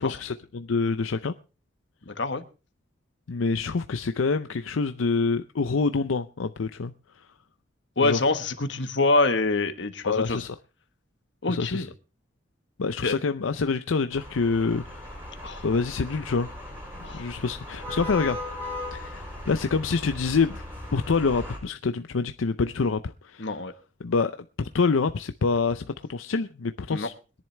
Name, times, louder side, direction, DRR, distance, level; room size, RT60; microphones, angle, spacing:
voice 1, 0.0-1.3 3.3-6.9 8.0-8.2 10.0-10.6 11.5-11.9 12.8-15.0 15.6-16.5 17.1-18.4 18.9-20.6 20.9-23.6 24.0-24.3 24.6-27.1, left 4 dB, 90° left, 0.6 m, -26 dB
voice 2, 2.1-2.4 8.0-10.4 11.4-11.9 13.0-13.2 15.4-15.6 17.0-17.2 23.4-23.7 26.9-27.1, left 3 dB, 65° left, 1.4 m, -25 dB
sound 1, 14.1-21.6, left 1 dB, 10° right, 5.4 m, -38 dB
22.0 x 10.5 x 3.3 m
head